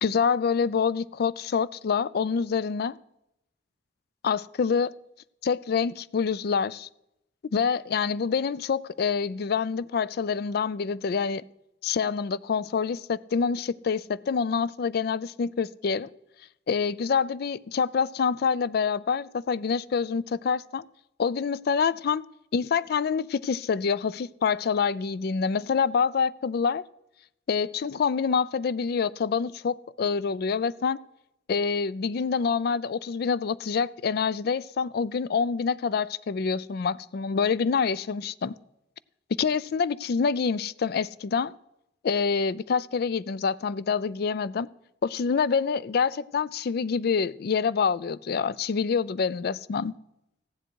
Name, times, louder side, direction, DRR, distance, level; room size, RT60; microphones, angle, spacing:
voice 1, 0.0-3.0 4.2-4.9 5.4-6.9 7.5-11.4 11.8-16.1 16.7-20.8 21.2-22.2 22.5-26.8 27.5-31.0 31.5-38.5 39.4-41.5 42.0-44.7 45.0-49.9, left 6 dB, 55° left, 0.4 m, -26 dB
15.0 x 10.0 x 4.6 m
head